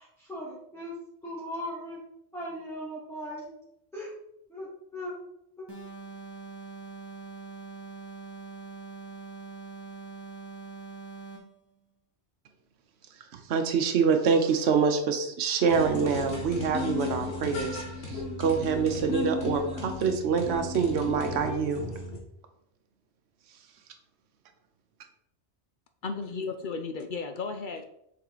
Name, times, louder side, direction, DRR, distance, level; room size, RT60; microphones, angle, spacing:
voice 1, 0.0-2.0 2.3-3.5 3.9-4.1 4.5-5.1 5.6-5.7, equal, ahead, -7 dB, 1.3 m, -38 dB
sound 1, 5.7-11.6, right 4 dB, 20° left, 1.8 m, -43 dB
voice 2, 13.3-21.9, right 6 dB, 70° right, 5 dB, 1.0 m, -26 dB
sound 2, 15.7-22.2, left 3 dB, 90° left, 1.8 m, -35 dB
voice 3, 26.0-27.9, left 4 dB, 55° left, 7 dB, 0.6 m, -34 dB
7.1 x 3.9 x 3.9 m, 0.77 s
omnidirectional pair, 1.2 m